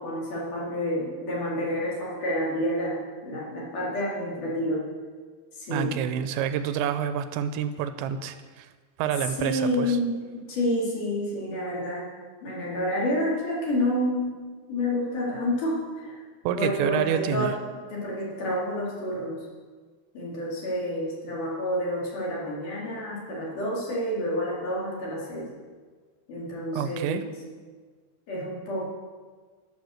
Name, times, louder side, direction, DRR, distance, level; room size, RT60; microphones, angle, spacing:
voice 1, 0.0-4.9 5.5-6.0 9.4-12.1 12.4-14.3 14.7-16.2 16.5-19.4 20.1-25.5 26.3-27.4 28.3-28.9, equal, 50° left, -4 dB, 3.5 m, -29 dB
voice 2, 5.7-8.7 9.0-10.0 16.4-17.5 26.7-27.2, right 9 dB, 85° right, 10 dB, 2.8 m, -28 dB
12.5 x 6.9 x 6.3 m, 1.5 s
omnidirectional pair, 5.2 m